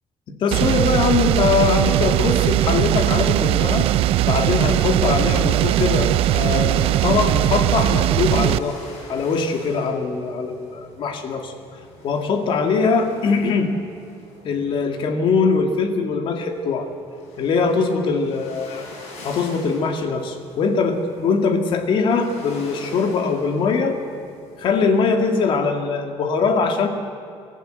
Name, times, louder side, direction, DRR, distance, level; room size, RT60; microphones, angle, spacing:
voice 1, 0.4-3.9 4.2-8.8 9.1-11.5 12.0-13.7 14.4-16.9 17.4-18.9 19.2-24.0 24.6-26.9, left 4 dB, 50° left, 5 dB, 2.2 m, -21 dB
sound 1, 0.5-8.6, right 14 dB, 65° right, 0.4 m, -19 dB
sound 2, 7.0-25.4, left 2 dB, 80° left, 6.0 m, -45 dB
24.0 x 14.5 x 7.8 m, 2.5 s
cardioid pair, 155°, 11 cm